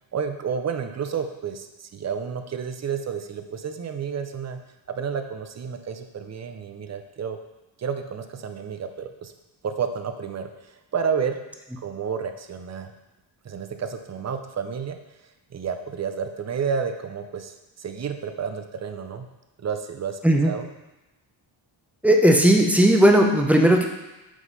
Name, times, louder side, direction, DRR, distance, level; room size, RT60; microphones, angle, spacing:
voice 1, 0.1-4.6 4.9-7.4 7.8-9.3 9.6-11.4 11.8-12.9 13.4-15.0 15.5-19.3 19.6-20.7, right 6 dB, 35° right, 7 dB, 0.6 m, -30 dB
voice 2, 22.0-23.8, right 1 dB, 5° right, 2 dB, 0.8 m, -16 dB
6.1 x 3.9 x 5.4 m, 1.0 s
cardioid pair, 85°, 48 cm